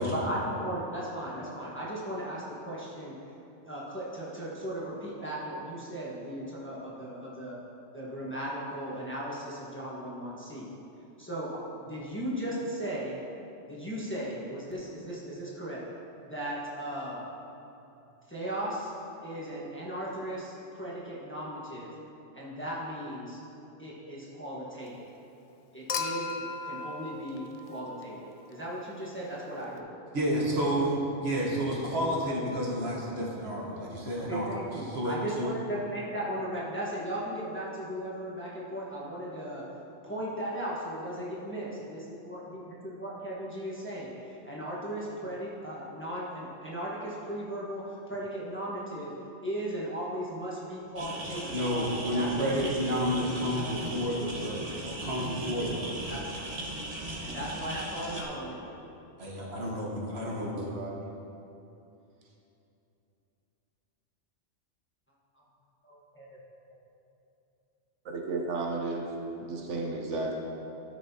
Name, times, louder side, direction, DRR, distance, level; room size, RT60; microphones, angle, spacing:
voice 1, 0.1-3.1 3.6-7.6 7.9-10.7 11.2-13.2 13.7-15.8 16.2-17.2 18.3-18.9 19.2-21.9 22.3-23.4 23.8-25.0 25.7-29.9 30.3-30.4 34.2-39.6 40.0-49.1 49.4-51.6 52.0-52.7 53.1-53.7 54.8-55.4 56.1-56.2 57.2-58.9 65.8-66.4, right 1 dB, 10° left, -7 dB, 1.3 m, -37 dB
Human group actions / Chink clink / Liquid, 25.9-28.3 29.8-29.9, left 4 dB, 70° left, 0.3 m, -36 dB
voice 2, 30.1-34.5 34.9-35.5 51.5-54.7 55.0-56.1 59.2-60.7, equal, 60° right, -3 dB, 1.5 m, -30 dB
sound 1, 51.0-58.2, right 1 dB, 35° right, 1.1 m, -38 dB
voice 3, 60.4-61.1 68.0-69.1 69.4-70.4, right 3 dB, 75° right, 0 dB, 1.1 m, -34 dB
13.0 x 6.3 x 2.8 m, 2.9 s
omnidirectional pair, 1.2 m